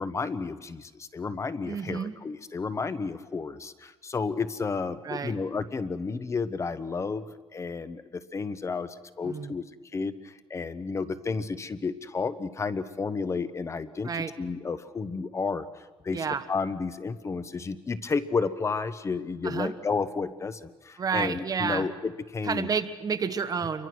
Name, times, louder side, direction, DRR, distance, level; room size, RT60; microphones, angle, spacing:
voice 1, 0.0-7.2 7.5-8.9 9.2-9.6 9.9-22.7, left 4 dB, 30° left, 13 dB, 0.9 m, -32 dB
voice 2, 1.7-2.1 5.0-5.3 9.2-9.5 14.0-14.3 16.1-16.4 19.4-19.7 21.0-21.9 22.4-23.9, right 6 dB, 40° right, 9 dB, 1.3 m, -30 dB
28.5 x 23.5 x 6.2 m, 1.2 s
cardioid pair, 125°, 10 cm